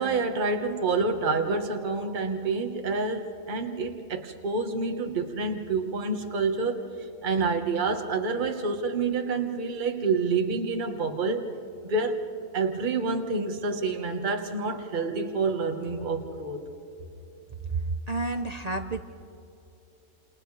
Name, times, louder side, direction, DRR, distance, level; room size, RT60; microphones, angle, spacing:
voice 1, 0.0-6.8 7.2-11.5 11.8-12.2 12.5-16.6, right 4 dB, 30° right, 4 dB, 1.3 m, -28 dB
voice 2, 17.6-19.0, right 3 dB, 55° right, 6 dB, 0.4 m, -30 dB
30.0 x 28.5 x 3.3 m, 2.9 s
omnidirectional pair, 1.7 m